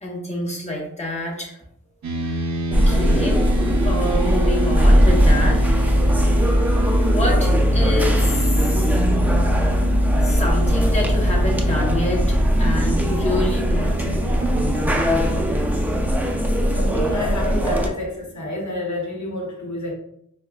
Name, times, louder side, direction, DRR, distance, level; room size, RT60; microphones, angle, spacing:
voice 1, 0.0-1.6 2.2-2.4 2.7-3.4 3.8-5.6 6.1-6.2 7.0-8.7 10.2-14.4, left 1 dB, 20° left, -2 dB, 1.0 m, -27 dB
sound 1, 2.0-17.9, right 2 dB, 65° right, 0.5 m, -29 dB
sound 2, 2.7-17.9, equal, 5° right, 0.4 m, -19 dB
voice 2, 16.7-19.9, left 1 dB, 65° left, -1 dB, 0.9 m, -28 dB
4.5 x 2.2 x 2.4 m, 0.74 s
wide cardioid pair, 55°, 31 cm